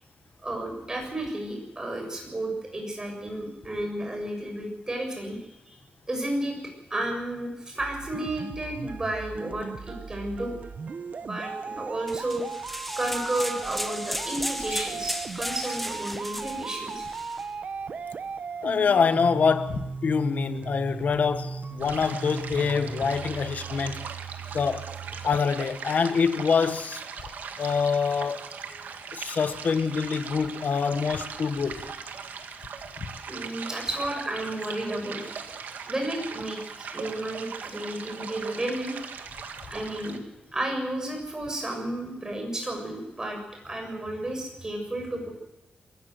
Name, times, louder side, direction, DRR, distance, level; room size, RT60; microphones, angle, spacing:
voice 1, 0.4-5.8 6.1-6.6 6.9-10.6 11.2-12.7 13.0-17.1 28.7-28.8 33.3-35.2 35.9-36.6 36.9-38.9 39.7-40.2 40.5-43.4 43.6-45.3, right 1 dB, 20° right, 7.0 m, -32 dB
sound 1, 7.8-25.3, right 5 dB, 55° right, 0.9 m, -37 dB
sound 2, 12.1-17.5, equal, 5° left, 0.8 m, -35 dB
voice 2, 18.6-24.0 24.5-24.9 25.2-27.0 27.6-28.5 29.1-31.8 33.0-33.1, left 5 dB, 60° left, 1.4 m, -25 dB
sound 3, 21.8-40.2, right 6 dB, 90° right, 1.9 m, -40 dB
23.0 x 15.0 x 8.0 m
wide cardioid pair, 120°, 3 cm